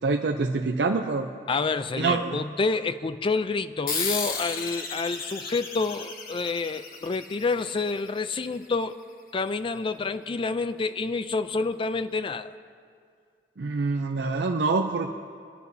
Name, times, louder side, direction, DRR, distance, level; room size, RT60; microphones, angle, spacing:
voice 1, 0.0-1.3 2.0-2.4 13.6-15.2, right 3 dB, 70° right, 3 dB, 0.5 m, -26 dB
voice 2, 1.5-9.0 9.3-12.5, left 4 dB, 30° left, 12 dB, 0.4 m, -28 dB
sound 1, 3.9-8.8, left 4 dB, 55° left, 1.1 m, -34 dB
26.0 x 11.0 x 2.7 m, 2.2 s
head